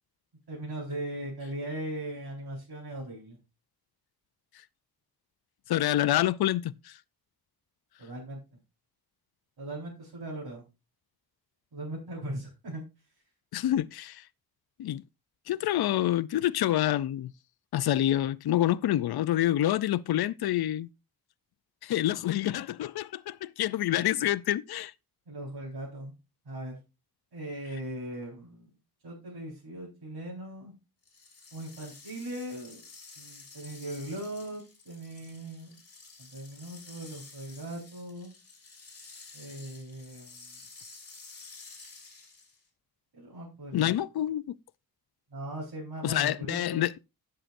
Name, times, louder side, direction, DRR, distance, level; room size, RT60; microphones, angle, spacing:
voice 1, 0.5-3.4 8.0-8.4 9.6-10.6 11.7-12.8 25.3-26.1 26.4-26.8 27.3-28.7 29.0-30.7 31.5-32.8 33.2-35.7 36.2-38.3 39.3-40.5 43.1-43.9 45.3-46.8, right 1 dB, 85° right, 4.3 m, -39 dB
voice 2, 5.7-6.9 13.5-14.2 14.8-15.0 15.5-17.3 17.7-20.9 21.8-24.9 43.7-44.4 46.0-47.0, left 13 dB, 80° left, 0.5 m, -27 dB
sound 1, 31.0-42.7, left 4 dB, 40° left, 3.1 m, -51 dB
16.0 x 6.7 x 2.5 m
wide cardioid pair, 160°, 37 cm